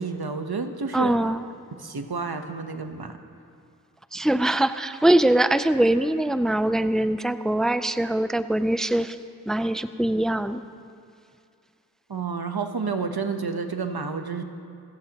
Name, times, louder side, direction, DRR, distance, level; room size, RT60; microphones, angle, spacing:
voice 1, 0.0-1.3 1.7-3.2 12.1-14.4, right 4 dB, 90° right, 6 dB, 1.0 m, -30 dB
voice 2, 0.9-1.4 4.1-9.2 9.5-10.6, right 1 dB, ahead, 11 dB, 0.5 m, -22 dB
28.5 x 15.0 x 3.0 m, 2.4 s
wide cardioid pair, 50°, 37 cm